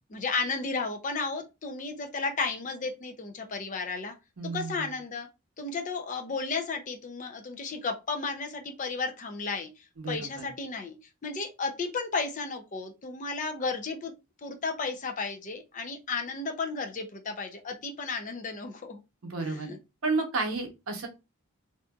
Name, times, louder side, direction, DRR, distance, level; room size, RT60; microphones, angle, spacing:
voice 1, 0.1-4.1 4.4-5.3 5.6-11.0 11.2-14.1 14.4-19.0 19.4-19.8, left 4 dB, 35° left, 0.5 m, -33 dB
voice 2, 4.4-4.9 10.0-10.5 19.2-19.7 20.0-21.1, right 3 dB, 75° right, 0.8 m, -31 dB
2.7 x 2.5 x 2.3 m
head